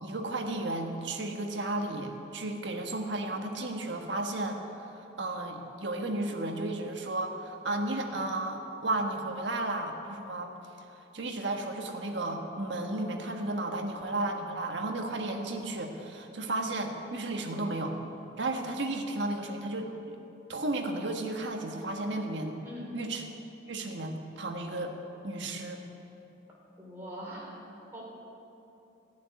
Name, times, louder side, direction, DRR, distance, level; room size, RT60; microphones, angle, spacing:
voice 1, 0.0-10.6 10.9-18.0 18.4-20.2 20.5-22.6 22.9-23.2 23.7-24.9 25.2-25.8, right 2 dB, 75° right, 3 dB, 1.4 m, -33 dB
voice 2, 22.6-22.9 26.8-27.5 27.9-28.0, equal, 10° right, -6 dB, 3.5 m, -42 dB
14.0 x 7.2 x 9.4 m, 2.9 s
head